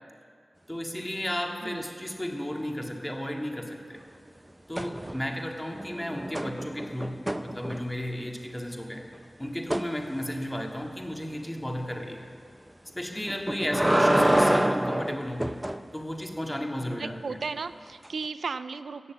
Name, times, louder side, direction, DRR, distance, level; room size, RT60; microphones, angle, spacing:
voice 1, 0.7-4.0 4.7-9.1 9.4-12.3 13.0-15.5 15.9-17.4, equal, 15° left, 2 dB, 1.9 m, -34 dB
sound 1, 4.7-5.4 5.7-8.1 9.7-9.9 13.3-15.8 18.0-18.1, right 1 dB, 15° right, 0.6 m, -26 dB
voice 2, 17.0-19.1, right 4 dB, 85° right, 13 dB, 0.3 m, -35 dB
16.5 x 6.9 x 8.0 m, 2.2 s
cardioid pair, 45°, 0 cm